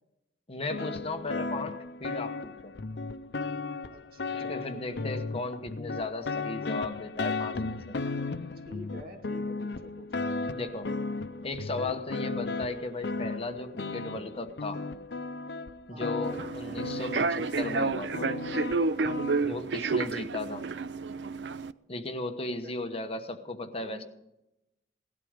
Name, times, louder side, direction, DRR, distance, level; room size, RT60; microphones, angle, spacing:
voice 1, 0.5-2.7 4.3-7.9 10.5-10.9 11.4-14.8 15.9-18.3 19.4-20.6 21.9-24.0, left 2 dB, 35° left, 7 dB, 1.1 m, -36 dB
sound 1, 0.7-19.5, left 3 dB, 70° left, 0.7 m, -35 dB
voice 2, 3.9-5.2 8.6-10.3 15.9-16.2 22.6-22.7 23.8-24.0, left 1 dB, 55° right, 2 dB, 2.7 m, -48 dB
Human voice / Subway metro underground, 16.2-21.7, right 4 dB, 85° right, 0.5 m, -30 dB
18.0 x 12.5 x 5.1 m, 0.88 s
head